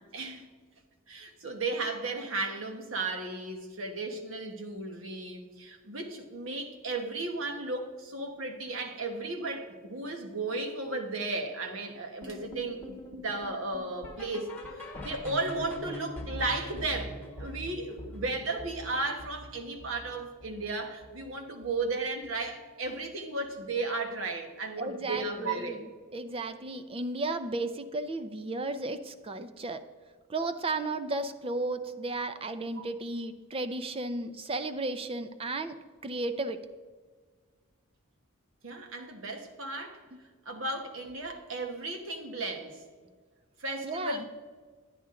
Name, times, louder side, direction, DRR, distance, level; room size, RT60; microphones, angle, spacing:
voice 1, 0.1-0.5 1.1-25.8 32.8-32.9 38.6-40.0 40.4-42.8 43.6-44.2, right 3 dB, 65° right, 5 dB, 1.2 m, -35 dB
sound 1, 12.2-21.3 21.6-21.9 22.2-22.3 22.8-22.9 23.4-23.5, left 1 dB, 10° left, 1.3 m, -43 dB
voice 2, 24.8-29.8 30.3-35.8 36.0-36.6 40.1-40.2 43.8-44.2, right 2 dB, 25° right, 11 dB, 0.5 m, -34 dB
10.5 x 10.0 x 3.7 m, 1.5 s
head